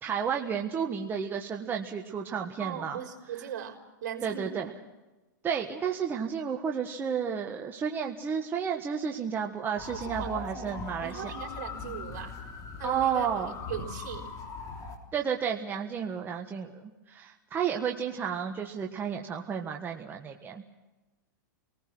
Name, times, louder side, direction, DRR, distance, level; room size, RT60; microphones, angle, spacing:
voice 1, 0.0-3.0 4.2-4.7 5.4-11.3 12.8-13.5 15.1-20.6, right 7 dB, 20° right, 2 dB, 1.5 m, -32 dB
voice 2, 2.6-4.7 9.9-12.4 12.8-14.2, right 8 dB, 60° right, 3 dB, 4.3 m, -39 dB
sound 1, 9.7-15.0, left 5 dB, 35° left, 3.7 m, -40 dB
28.5 x 19.5 x 6.2 m, 1.1 s
hypercardioid pair, 130°, 11 cm